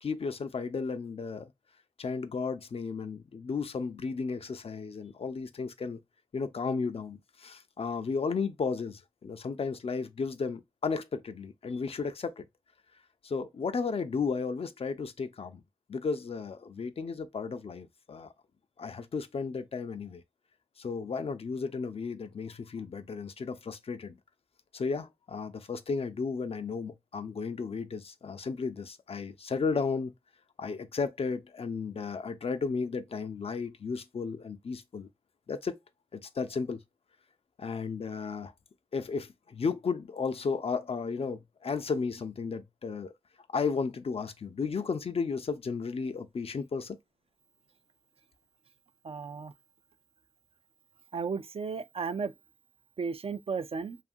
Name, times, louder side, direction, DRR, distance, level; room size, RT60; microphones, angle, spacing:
voice 1, 0.0-1.5 2.0-6.0 6.3-12.5 13.2-15.6 15.9-18.3 18.8-20.2 20.8-24.2 24.7-30.1 30.6-35.1 35.5-35.8 36.1-36.8 37.6-38.5 38.9-43.1 43.5-47.0, left 5 dB, 75° left, 0.4 m, -34 dB
voice 2, 49.0-49.5 51.1-52.3 53.0-54.0, right 5 dB, 70° right, 0.4 m, -34 dB
2.7 x 2.5 x 2.4 m
cardioid pair, 40°, 10 cm